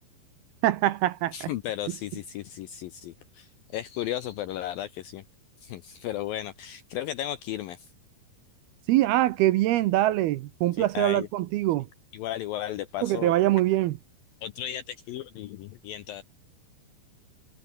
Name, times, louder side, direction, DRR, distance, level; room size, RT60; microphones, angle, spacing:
voice 1, 0.6-1.3 8.9-11.9 13.0-14.0, right 15 dB, 75° right, 2.5 m, -23 dB
voice 2, 1.3-5.2 5.6-7.9 10.8-11.3 12.1-13.3 14.4-16.2, left 12 dB, 80° left, 2.1 m, -35 dB
omnidirectional pair, 5.1 m